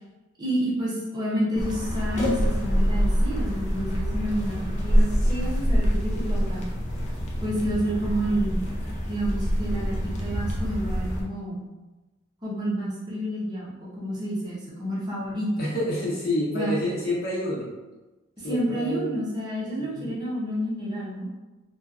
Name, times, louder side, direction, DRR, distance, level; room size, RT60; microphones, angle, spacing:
voice 1, 0.4-6.7 7.4-8.6 9.1-11.6 12.4-15.7 16.5-16.7 18.4-21.3, right 1 dB, 20° right, -8 dB, 0.6 m, -29 dB
sound 1, 1.6-11.2, equal, 35° left, 0.4 m, -25 dB
voice 2, 15.6-17.7 18.4-19.2 19.8-20.1, left 1 dB, 50° left, -7 dB, 0.9 m, -28 dB
2.6 x 2.2 x 2.4 m, 1.1 s
head